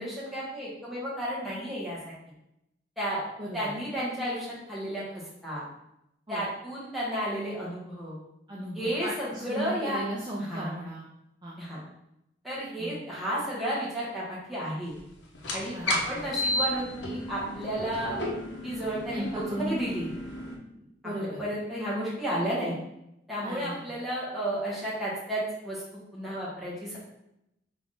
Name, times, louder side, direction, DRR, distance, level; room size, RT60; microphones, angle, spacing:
voice 1, 0.0-2.1 3.0-3.2 3.5-5.6 6.3-8.2 8.7-10.1 10.4-10.8 11.6-11.8 12.4-14.9 15.5-18.2 18.6-20.1 21.4-22.8 23.3-27.0, right 1 dB, ahead, -8 dB, 1.5 m, -32 dB
voice 2, 3.4-3.7 6.3-6.4 8.5-11.1 11.4-11.6 12.8-13.0 15.7-16.3 19.1-19.7 20.7-21.4 23.4-23.9, right 1 dB, 20° right, -5 dB, 0.5 m, -36 dB
sound 1, 15.3-20.6, left 1 dB, 70° left, 0.8 m, -33 dB
3.6 x 3.5 x 3.8 m, 0.83 s
head